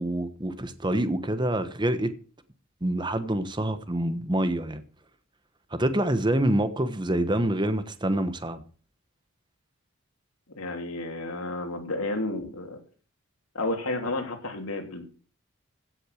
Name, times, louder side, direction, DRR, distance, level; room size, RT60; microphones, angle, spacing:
voice 1, 0.0-2.1 2.8-4.8 5.7-8.6, right 1 dB, 20° right, 1.2 m, -26 dB
voice 2, 10.5-12.8 13.5-15.0, left 2 dB, 80° left, 3.1 m, -31 dB
16.0 x 6.4 x 6.5 m
head